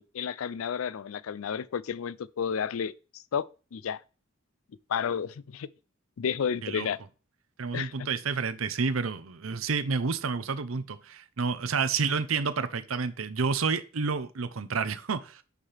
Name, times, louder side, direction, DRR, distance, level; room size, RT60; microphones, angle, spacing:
voice 1, 0.0-3.4 3.7-4.0 4.9-5.7 6.2-7.0 7.7-8.1, left 7 dB, 85° left, 0.4 m, -31 dB
voice 2, 7.6-15.4, right 5 dB, 85° right, 0.7 m, -29 dB
8.2 x 5.6 x 3.3 m
head